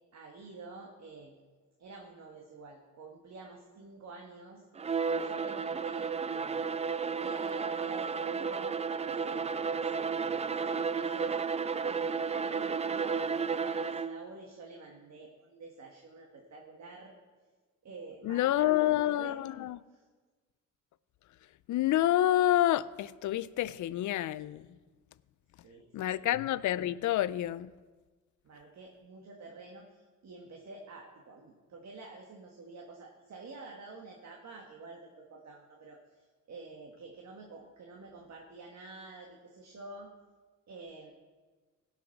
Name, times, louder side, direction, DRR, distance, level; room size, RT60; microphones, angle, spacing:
voice 1, 0.1-1.4 1.8-4.6 5.2-6.6 7.2-11.3 11.8-17.1 17.8-19.7 19.9-20.0 25.6-26.3 28.4-40.1 40.7-41.1, right 3 dB, 55° right, 1.7 m, -49 dB
Bowed string instrument, 4.8-14.3, right 5 dB, 20° right, 0.3 m, -32 dB
voice 2, 18.2-19.8 21.7-24.6 25.9-27.7, left 13 dB, 65° left, 0.5 m, -28 dB
16.5 x 5.8 x 5.9 m
cardioid pair, 100°, 33 cm